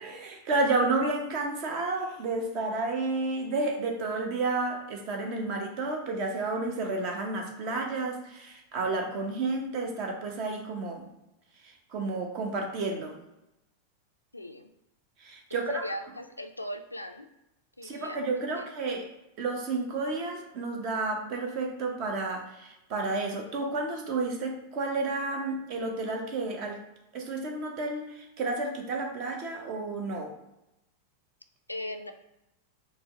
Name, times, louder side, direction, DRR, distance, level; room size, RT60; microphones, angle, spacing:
voice 1, 0.0-11.1 11.6-13.2 15.2-15.8 17.8-19.1 19.4-26.8 27.1-30.3, right 3 dB, 40° right, 2 dB, 0.8 m, -31 dB
voice 2, 14.3-14.7 15.5-17.3 17.8-18.7 31.7-32.1, left 1 dB, 85° left, 7 dB, 0.3 m, -39 dB
4.3 x 2.1 x 3.5 m, 0.91 s
figure-of-eight pair, 90°, 0 cm